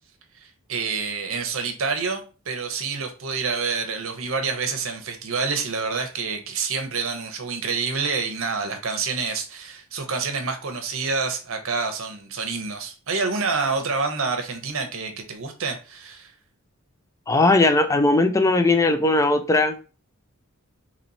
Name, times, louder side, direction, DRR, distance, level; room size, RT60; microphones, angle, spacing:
voice 1, 0.4-16.3, right 4 dB, 60° right, 0.8 m, -28 dB
voice 2, 17.3-19.8, left 2 dB, 15° left, 0.3 m, -18 dB
3.0 x 2.9 x 4.0 m
head